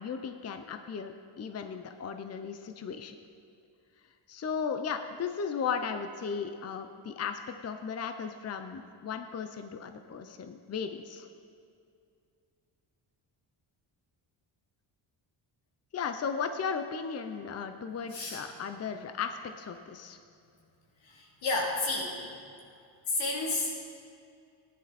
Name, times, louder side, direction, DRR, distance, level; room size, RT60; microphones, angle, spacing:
voice 1, 0.0-3.1 4.3-11.3 15.9-20.2, left 6 dB, 35° left, 7 dB, 0.6 m, -36 dB
voice 2, 18.1-18.5 21.0-22.3 23.1-23.8, left 2 dB, 90° left, -3 dB, 2.9 m, -31 dB
16.0 x 10.5 x 4.2 m, 2.4 s
cardioid pair, 115°, 46 cm